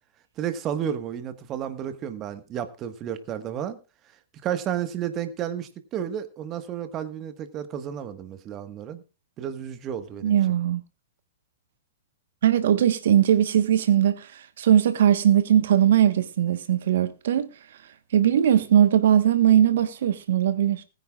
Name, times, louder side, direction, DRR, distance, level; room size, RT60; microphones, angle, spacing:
voice 1, 0.4-3.8 4.4-9.0 9.4-10.4, right 9 dB, 30° right, 1.5 m, -32 dB
voice 2, 10.2-10.8 12.4-17.5 18.1-20.8, right 10 dB, 60° right, 1.3 m, -20 dB
20.0 x 9.6 x 2.4 m
figure-of-eight pair, 110°, 0 cm